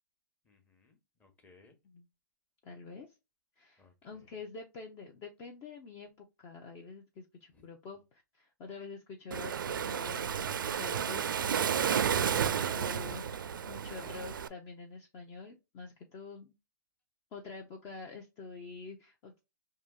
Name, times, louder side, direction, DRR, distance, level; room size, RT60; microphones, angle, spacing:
voice 1, 0.4-1.8 3.8-4.3 7.5-7.7, left 3 dB, 15° left, 1.0 m, -64 dB
voice 2, 2.6-3.1 3.6-11.3 11.6-16.5 17.3-19.4, left 4 dB, 30° left, 0.7 m, -47 dB
Waves surf, 9.3-14.5, right 8 dB, 85° right, 0.4 m, -32 dB
4.9 x 2.8 x 2.2 m
hypercardioid pair, 135°, 11 cm